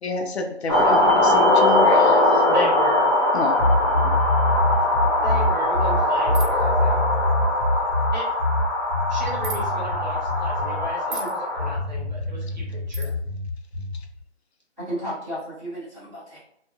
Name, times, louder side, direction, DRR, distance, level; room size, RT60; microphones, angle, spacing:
voice 1, 0.0-2.4 3.3-4.1, left 3 dB, 65° left, 4 dB, 0.6 m, -29 dB
sound 1, 0.7-11.8, left 1 dB, 30° left, 1.2 m, -21 dB
voice 2, 2.5-3.1 5.2-7.5 8.1-8.2 9.1-13.1, equal, 40° right, -4 dB, 1.1 m, -34 dB
sound 2, 3.6-10.9 11.6-14.0, left 2 dB, 50° left, 1.2 m, -25 dB
sound 3, 6.3-6.7 9.4-9.6 11.1-11.4 12.9-13.1, right 5 dB, 80° right, 1.0 m, -35 dB
voice 3, 14.8-16.4, equal, ahead, -26 dB, 1.0 m, -33 dB
3.1 x 2.7 x 2.2 m, 0.75 s
hypercardioid pair, 170°, 35 cm